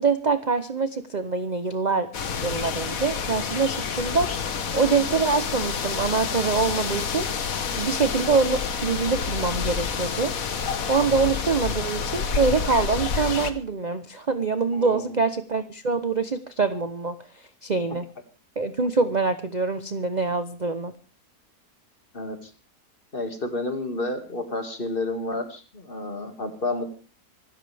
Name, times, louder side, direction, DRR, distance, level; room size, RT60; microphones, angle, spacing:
voice 1, 0.0-2.1 2.4-7.3 7.8-10.3 10.9-18.0 18.6-20.9, right 4 dB, 35° right, 10 dB, 0.8 m, -25 dB
sound 1, 2.1-13.5, left 6 dB, 60° left, 1.6 m, -28 dB
voice 2, 14.7-15.2 22.1-22.5 23.1-26.8, left 2 dB, 35° left, 6 dB, 2.3 m, -30 dB
26.0 x 13.0 x 3.5 m, 0.35 s
omnidirectional pair, 1.7 m